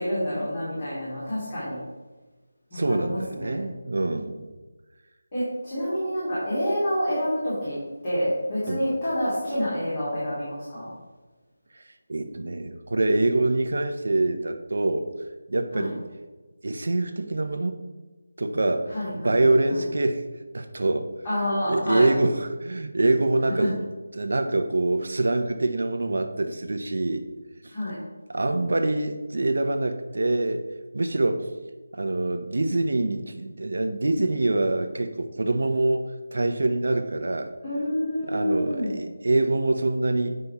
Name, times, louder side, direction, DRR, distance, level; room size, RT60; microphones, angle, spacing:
voice 1, 0.0-1.8 2.7-3.6 5.3-7.8 8.0-10.9 15.7-15.9 18.9-19.4 19.7-19.8 21.2-22.1 23.6-23.7 27.7-28.0 37.6-39.0, equal, 25° left, -11 dB, 2.8 m, -28 dB
voice 2, 2.7-4.4 8.7-8.9 12.1-15.1 15.5-16.0 16.6-17.8 18.4-20.3 20.5-21.1 21.7-27.2 27.6-27.7 28.3-30.6 30.9-31.5 31.9-37.5 38.3-40.4, right 2 dB, 60° right, 7 dB, 1.0 m, -25 dB
8.2 x 5.2 x 5.8 m, 1.2 s
figure-of-eight pair, 175°, 0 cm